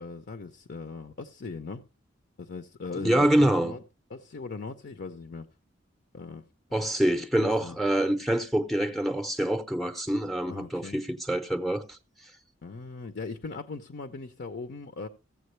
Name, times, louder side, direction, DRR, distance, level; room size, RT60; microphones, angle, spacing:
voice 1, 0.0-1.9 2.4-3.8 4.1-5.5 6.1-6.9 7.4-7.8 10.5-11.0 12.6-15.1, left 4 dB, 55° left, 0.6 m, -39 dB
voice 2, 3.0-3.8 6.7-12.0, right 1 dB, ahead, 0.6 m, -26 dB
15.0 x 7.4 x 3.1 m
head